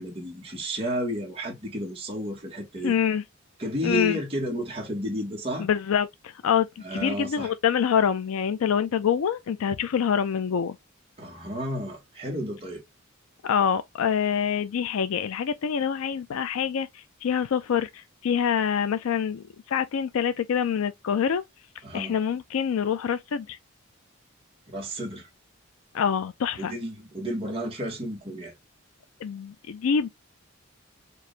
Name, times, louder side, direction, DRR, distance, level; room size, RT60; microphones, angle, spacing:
voice 1, 0.0-3.0 3.6-5.7 6.8-7.5 11.2-12.8 21.8-22.2 24.7-25.3 26.6-28.5, equal, 25° right, 1.4 m, -32 dB
voice 2, 2.8-3.2 3.8-4.2 5.6-10.8 13.4-21.4 21.9-23.6 25.9-26.7 29.2-30.1, left 7 dB, 80° left, 0.4 m, -26 dB
4.6 x 2.5 x 3.2 m
head